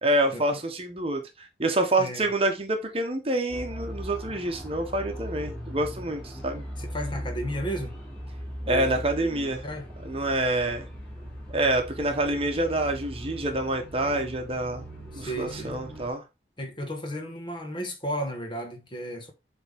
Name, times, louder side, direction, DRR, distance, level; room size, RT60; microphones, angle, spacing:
voice 1, 0.0-6.6 8.7-9.6 10.0-10.9 11.5-14.9 15.1-16.2, right 1 dB, 35° right, 1.1 m, -27 dB
voice 2, 2.0-2.3 6.8-8.0 8.6-9.9 15.1-15.8 16.6-19.3, equal, 25° left, 1.3 m, -34 dB
sound 1, 3.5-16.1, equal, 5° left, 2.4 m, -39 dB
7.9 x 3.6 x 3.6 m
head